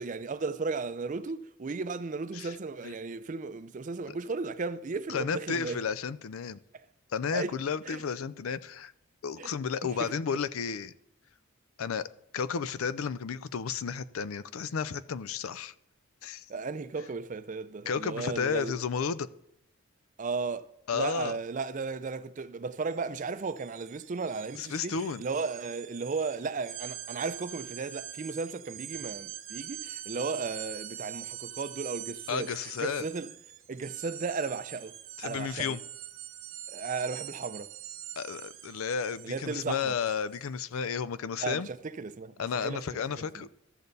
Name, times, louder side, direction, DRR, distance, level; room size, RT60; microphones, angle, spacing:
voice 1, 0.0-5.8 7.3-7.6 7.8-8.0 9.4-9.5 10.0-10.1 16.5-18.7 20.2-24.9 25.2-33.3 33.7-35.0 35.2-35.8 36.7-37.7 39.2-40.0 41.4-43.5, right 4 dB, 40° right, 0.4 m, -35 dB
voice 2, 5.1-6.6 7.1-8.9 9.2-10.9 11.8-12.0 12.3-15.7 16.2-16.5 17.9-19.3 20.9-21.3 24.5-25.2 32.3-33.1 35.2-35.8 38.2-41.7 42.4-43.6, left 6 dB, 90° left, 0.5 m, -32 dB
sound 1, 22.8-23.0 23.3-40.5, right 11 dB, 70° right, 0.8 m, -44 dB
13.5 x 6.7 x 4.0 m
head